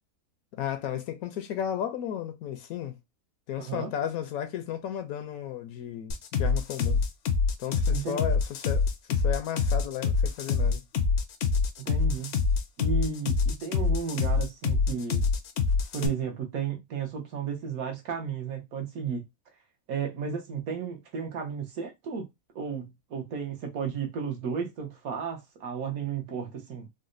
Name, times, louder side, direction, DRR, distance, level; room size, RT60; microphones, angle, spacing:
voice 1, 0.5-2.9 3.5-7.0 7.6-10.8, left 9 dB, 80° left, 1.0 m, -34 dB
voice 2, 3.6-3.9 7.9-8.2 11.8-12.3 12.8-15.2 15.9-19.2 19.9-22.3 22.5-26.9, right 6 dB, 75° right, 1.3 m, -33 dB
sound 1, 6.1-16.1, left 5 dB, 65° left, 0.6 m, -25 dB
4.0 x 2.1 x 2.5 m
omnidirectional pair, 1.5 m